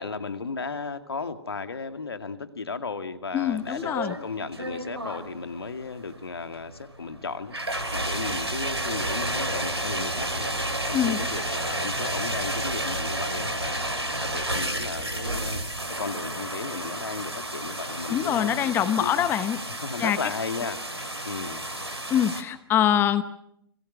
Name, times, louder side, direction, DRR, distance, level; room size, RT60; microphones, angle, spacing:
voice 1, 0.0-7.5 7.9-10.5 10.9-13.9 14.3-15.6 16.0-19.3 19.8-21.6, left 4 dB, 70° left, 8 dB, 2.2 m, -35 dB
voice 2, 3.3-4.1 10.9-11.2 18.1-19.6 20.0-20.2 22.1-23.2, left 10 dB, 15° left, 14 dB, 0.9 m, -24 dB
sound 1, 3.5-22.4, right 1 dB, 85° right, 3.4 m, -31 dB
30.0 x 21.5 x 6.2 m, 0.76 s
figure-of-eight pair, 120°, 13 cm